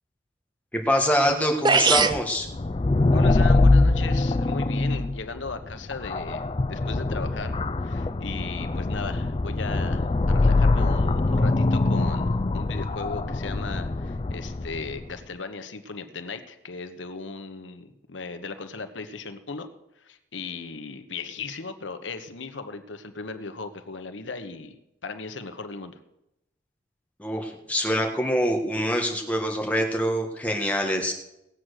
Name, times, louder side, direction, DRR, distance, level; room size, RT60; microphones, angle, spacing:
voice 1, 0.7-2.5 27.2-31.1, equal, 10° left, 2 dB, 1.6 m, -25 dB
sound 1, 1.3-1.4 1.6-2.2, right 4 dB, 25° right, 0.5 m, -20 dB
sound 2, 2.5-15.0, left 2 dB, 30° left, 0.4 m, -23 dB
voice 2, 3.1-19.7 20.0-26.0, left 4 dB, 90° left, 9 dB, 1.1 m, -37 dB
18.0 x 7.6 x 6.5 m, 0.87 s
head